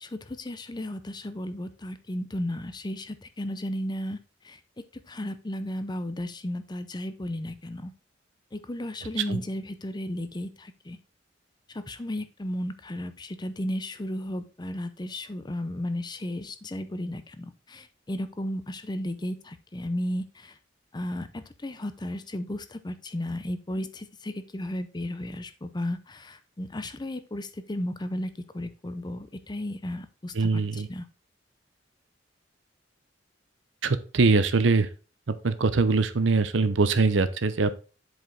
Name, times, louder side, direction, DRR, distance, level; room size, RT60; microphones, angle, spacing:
voice 1, 0.0-4.2 4.4-4.6 5.1-7.9 8.5-11.0 11.7-20.5 20.9-31.1, left 1 dB, 25° left, 11 dB, 0.6 m, -34 dB
voice 2, 30.4-30.9 33.8-34.9 35.4-37.8, right 3 dB, 80° right, 13 dB, 0.7 m, -23 dB
7.7 x 4.9 x 3.9 m, 0.35 s
head